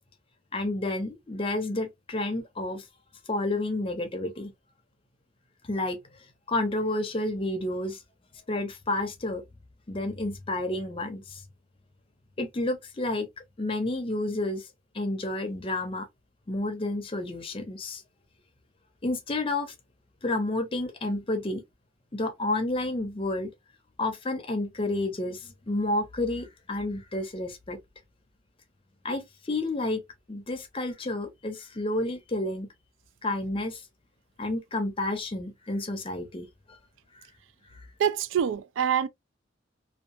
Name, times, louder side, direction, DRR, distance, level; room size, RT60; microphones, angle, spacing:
voice 1, 0.5-2.9 3.3-4.5 5.7-6.0 6.5-8.0 8.5-9.4 9.9-11.4 12.4-13.3 13.6-14.7 14.9-16.1 16.5-18.0 19.0-19.7 20.2-21.6 22.1-23.5 24.0-27.8 29.0-30.0 30.3-32.7 33.2-33.8 34.4-36.5 37.7-37.8, left 2 dB, 30° left, 0.6 m, -30 dB
voice 2, 38.0-39.1, right 8 dB, 85° right, 0.3 m, -25 dB
2.7 x 2.3 x 2.4 m
head